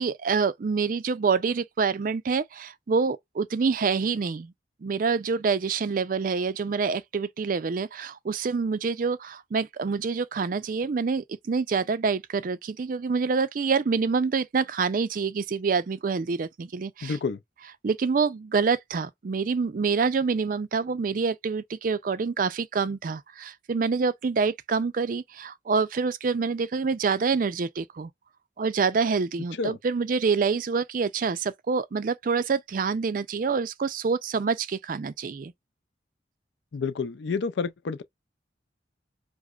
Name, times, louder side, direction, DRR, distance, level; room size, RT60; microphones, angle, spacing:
voice 1, 0.0-4.5 4.8-17.2 17.8-28.1 28.6-35.5, right 5 dB, 45° right, 0.4 m, -26 dB
voice 2, 17.0-17.4 29.6-29.8 36.7-38.0, left 5 dB, 70° left, 0.4 m, -29 dB
4.9 x 2.0 x 2.4 m
head